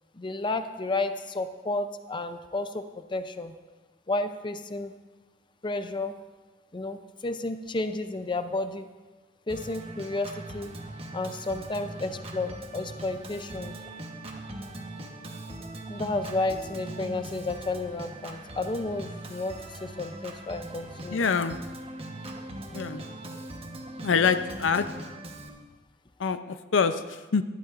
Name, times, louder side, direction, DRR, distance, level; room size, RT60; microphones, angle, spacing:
voice 1, 0.1-2.8 3.1-3.5 4.1-4.9 5.6-6.1 6.7-8.9 9.5-10.7 11.1-13.7 15.9-21.3, left 2 dB, 25° left, 9 dB, 0.5 m, -32 dB
Organ, 9.5-25.5, right 1 dB, 30° right, 1.2 m, -40 dB
voice 2, 21.1-21.6 22.7-23.0 24.0-24.9 26.2-27.0 27.3-27.4, left 5 dB, 85° left, 10 dB, 0.6 m, -25 dB
18.5 x 11.5 x 2.5 m, 1.2 s
head